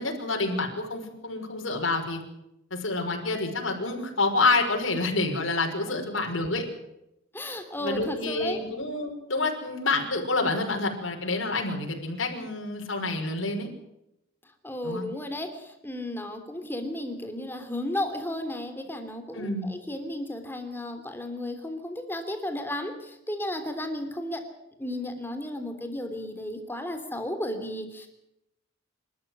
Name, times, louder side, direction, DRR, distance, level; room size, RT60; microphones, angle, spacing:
voice 1, 0.0-2.2 2.7-6.6 7.8-13.7 14.8-15.1 19.3-19.7, left 3 dB, 80° left, 2 dB, 5.4 m, -28 dB
voice 2, 7.3-8.6 14.6-24.4 24.8-28.1, left 1 dB, 10° left, 6 dB, 3.1 m, -34 dB
27.0 x 13.0 x 9.5 m, 0.85 s
head